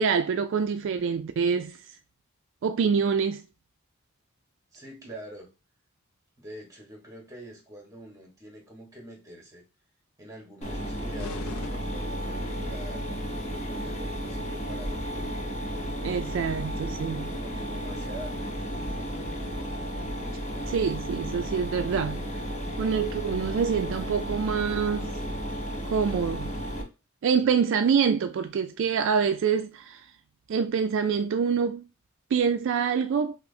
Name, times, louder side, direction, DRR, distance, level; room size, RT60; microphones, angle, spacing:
voice 1, 0.0-1.8 2.6-3.4 16.0-17.3 20.7-22.2 22.8-25.1 25.9-26.5 27.2-30.0 30.5-31.9 32.3-33.4, right 6 dB, 60° right, 0.3 m, -26 dB
voice 2, 4.7-5.5 6.4-9.6 10.2-13.0 13.6-15.3 17.2-18.5 27.4-27.5, right 1 dB, 15° right, 1.2 m, -45 dB
Mechanisms, 10.6-26.8, equal, 35° left, 0.9 m, -33 dB
sound 1, 11.2-12.7, left 4 dB, 85° left, 0.4 m, -43 dB
5.6 x 2.0 x 2.6 m
head